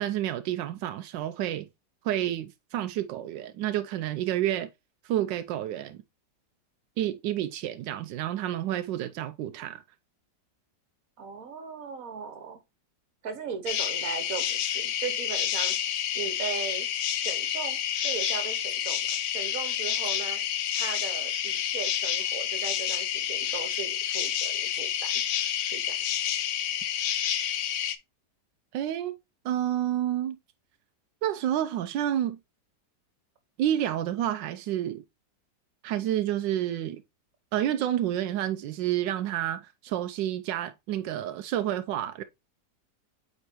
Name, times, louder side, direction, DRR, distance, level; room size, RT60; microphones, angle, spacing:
voice 1, 0.0-1.7 2.0-4.7 5.0-6.0 7.0-9.8 28.7-29.2 29.4-30.4 31.2-32.4 33.6-35.0 35.8-37.0 37.5-42.2, right 12 dB, 85° right, 1.2 m, -29 dB
voice 2, 11.2-12.6 13.2-15.8 16.1-20.4 20.7-25.2 25.7-25.9, right 6 dB, 55° right, 1.7 m, -38 dB
sound 1, 13.7-27.9, left 10 dB, 70° left, 0.7 m, -29 dB
8.1 x 4.4 x 2.9 m
omnidirectional pair, 1.9 m